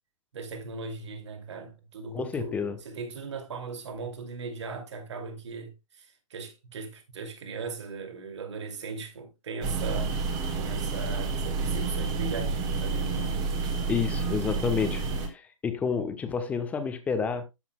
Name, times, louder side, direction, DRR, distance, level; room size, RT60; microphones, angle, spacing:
voice 1, 0.3-10.2 10.5-13.4 13.7-13.9, right 4 dB, 55° right, 2.4 m, -38 dB
voice 2, 2.1-2.8 13.9-17.4, left 6 dB, 10° left, 0.8 m, -30 dB
sound 1, 9.6-15.3, right 4 dB, 20° right, 1.5 m, -29 dB
13.0 x 5.9 x 2.2 m
figure-of-eight pair, 140°, 17 cm